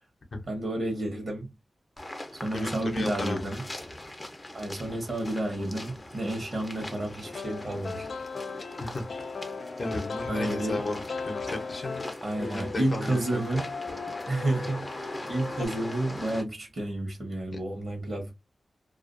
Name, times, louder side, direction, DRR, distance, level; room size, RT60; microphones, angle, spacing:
voice 1, 0.5-1.5 2.3-3.6 4.5-8.1 10.3-10.8 12.2-13.7 14.3-18.3, right 1 dB, 55° right, 1.0 m, -31 dB
sound 1, 2.0-16.4, left 1 dB, 20° left, 0.6 m, -41 dB
voice 2, 2.5-3.5 8.8-9.0 9.8-12.0 12.4-13.5 17.5-17.6, left 2 dB, 50° left, 0.8 m, -34 dB
sound 2, 7.2-15.7, left 4 dB, 65° left, 0.3 m, -38 dB
2.4 x 2.3 x 2.4 m
wide cardioid pair, 100°, 0 cm